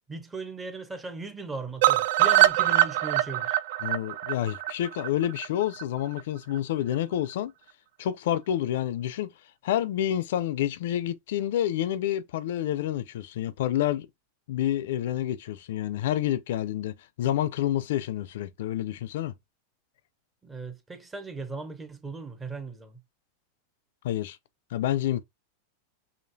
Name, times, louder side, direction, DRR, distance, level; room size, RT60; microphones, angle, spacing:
voice 1, 0.1-3.6 20.4-23.0, right 3 dB, 10° right, 0.6 m, -38 dB
sound 1, 1.8-5.8 6.2-6.3 6.6-6.7 6.9-7.0, right 14 dB, 60° right, 0.3 m, -23 dB
voice 2, 3.8-7.5 8.0-9.3 9.6-14.1 14.5-19.3 24.0-24.4 24.7-25.2, left 12 dB, 65° left, 0.4 m, -28 dB
5.0 x 2.7 x 2.7 m
supercardioid pair, 155°, 0 cm